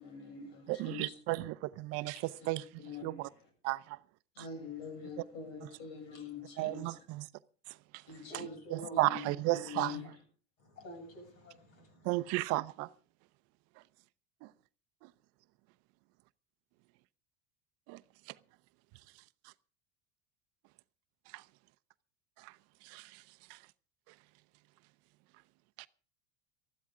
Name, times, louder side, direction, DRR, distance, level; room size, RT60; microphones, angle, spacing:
voice 1, 0.0-1.1 2.2-3.3 4.4-7.0 8.1-8.5 8.9-10.1, left 5 dB, 75° left, 7.4 m, -45 dB
voice 2, 0.7-3.3 3.6-4.0 6.6-7.3 8.7-10.0 12.0-12.9 17.9-18.0 21.3-21.4 22.4-22.5 22.8-23.2 23.5-23.6 25.8-25.9, right 20 dB, 55° right, 0.6 m, -34 dB
voice 3, 8.3-9.1 9.5-9.6 10.6-12.1, right 1 dB, 50° left, 7.6 m, -48 dB
19.5 x 13.5 x 3.7 m
supercardioid pair, 145°, 30 cm